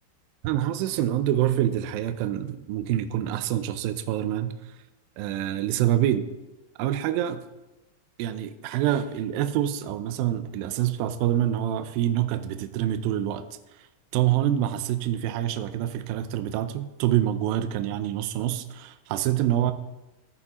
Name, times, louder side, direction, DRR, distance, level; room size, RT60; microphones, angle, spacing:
voice 1, 0.4-4.7 5.2-6.3 6.8-7.4 8.2-13.5 14.1-19.7, right 12 dB, 85° right, 10 dB, 2.1 m, -26 dB
14.5 x 10.0 x 3.0 m, 1.0 s
omnidirectional pair, 4.8 m